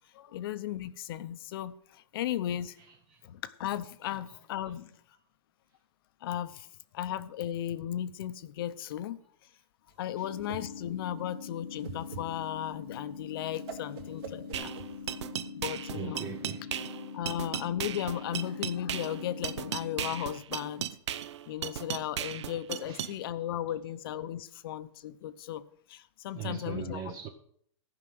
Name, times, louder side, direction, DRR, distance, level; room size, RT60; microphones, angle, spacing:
voice 1, 0.1-2.8 3.2-5.0 6.2-6.7 6.9-9.5 10.0-14.7 15.5-16.2 17.1-20.9 21.2-27.1, left 11 dB, 50° left, 0.8 m, -36 dB
voice 2, 4.0-4.4 4.6-4.8 10.2-10.3 15.9-16.9 17.2-17.3 21.8-21.9 22.4-22.6 22.8-23.8 26.3-27.3, right 8 dB, 25° right, 0.7 m, -42 dB
Whoosh swoosh swish, 9.9-15.4, right 5 dB, 50° right, 2.5 m, -46 dB
sound 1, 10.2-20.2, left 5 dB, 85° left, 1.4 m, -43 dB
sound 2, 14.5-23.1, right 10 dB, 70° right, 0.7 m, -37 dB
14.5 x 5.8 x 7.7 m
hypercardioid pair, 155°, 16 cm